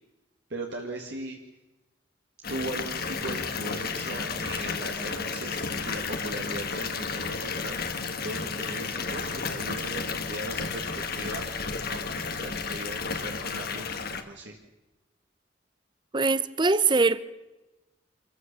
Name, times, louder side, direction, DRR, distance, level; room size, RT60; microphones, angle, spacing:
voice 1, 0.5-1.4 2.5-5.6 5.9-7.9 8.2-10.9 11.1-14.6, right 1 dB, 60° right, 2.0 m, -38 dB
Water tap faucet / Bathtub (filling or washing) / Fill (with liquid), 2.4-14.2, left 5 dB, 55° left, 1.5 m, -32 dB
voice 2, 16.1-17.2, right 3 dB, 25° right, 0.7 m, -22 dB
26.5 x 14.5 x 6.9 m
head